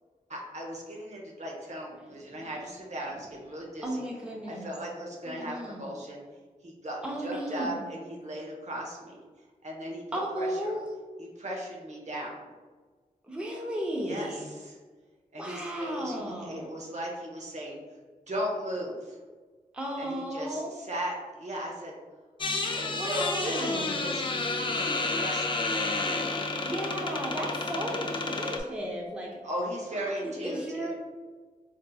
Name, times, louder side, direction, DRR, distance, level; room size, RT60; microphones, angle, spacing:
voice 1, 0.3-4.0 4.5-6.2 6.6-9.2 9.6-10.0 10.4-10.8 11.2-12.4 14.0-14.8 15.3-17.8 18.3-19.1 20.0-22.0 22.6-25.8 29.4-31.0, equal, 50° right, -2 dB, 0.8 m, -37 dB
voice 2, 3.8-4.7 5.2-5.9 7.0-7.8 10.1-10.8 13.2-14.5 15.4-16.8 19.7-20.8 22.9-24.2 26.6-29.3 29.9-31.0, right 1 dB, 5° right, -2 dB, 0.6 m, -35 dB
sound 1, 22.4-28.6, left 3 dB, 35° left, 0.4 m, -30 dB
3.8 x 2.7 x 2.3 m, 1.4 s
cardioid pair, 60°, 15 cm